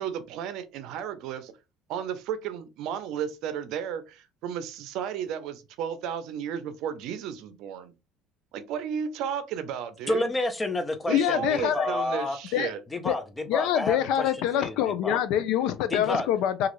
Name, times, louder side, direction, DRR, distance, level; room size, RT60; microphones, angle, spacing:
voice 1, 0.0-1.5 1.9-7.9 8.5-10.3 11.1-12.8, right 8 dB, 70° right, 0.6 m, -33 dB
voice 2, 10.1-12.4 12.9-14.3 14.6-15.2 15.9-16.3, left 2 dB, 15° left, 0.6 m, -30 dB
voice 3, 11.1-11.9 12.5-12.7 13.0-13.2 13.5-16.7, left 10 dB, 75° left, 0.4 m, -25 dB
3.0 x 2.4 x 3.0 m
cardioid pair, 125°, 0 cm